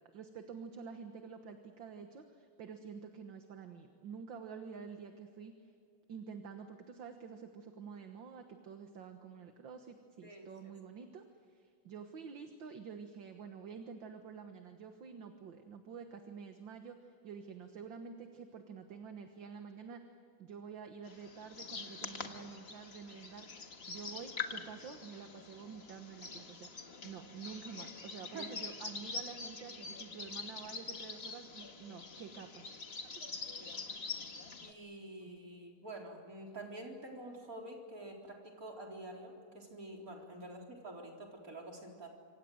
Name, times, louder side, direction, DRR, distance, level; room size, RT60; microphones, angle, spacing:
voice 1, 0.1-5.7 6.1-20.0 20.4-23.5 23.9-26.7 27.0-32.7 33.0-33.1 35.2-35.3, right 6 dB, 60° right, 6 dB, 2.1 m, -49 dB
voice 2, 10.2-10.7 28.3-28.5 29.6-29.9 33.6-33.7 34.6-42.1, right 1 dB, 40° right, 0 dB, 4.5 m, -48 dB
sound 1, 21.0-34.7, left 4 dB, 30° left, 1.6 m, -45 dB
27.0 x 25.5 x 7.9 m, 2.4 s
omnidirectional pair, 2.4 m